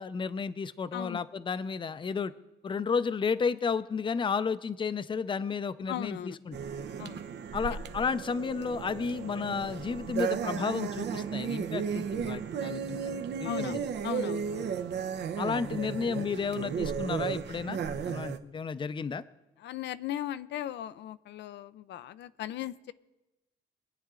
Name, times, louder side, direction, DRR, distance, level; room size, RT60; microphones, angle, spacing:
voice 1, 0.0-2.3 2.6-6.6 7.5-13.0 13.4-13.8 15.4-19.2, left 5 dB, 30° left, 14 dB, 0.5 m, -32 dB
voice 2, 0.9-1.2 5.9-6.4 7.0-7.2 13.4-13.7 14.0-14.7 19.6-22.9, left 12 dB, 80° left, 14 dB, 0.5 m, -37 dB
sound 1, 6.5-18.4, right 7 dB, 75° right, 0.8 m, -34 dB
22.0 x 9.2 x 3.7 m, 1.0 s
cardioid pair, 105°, 18 cm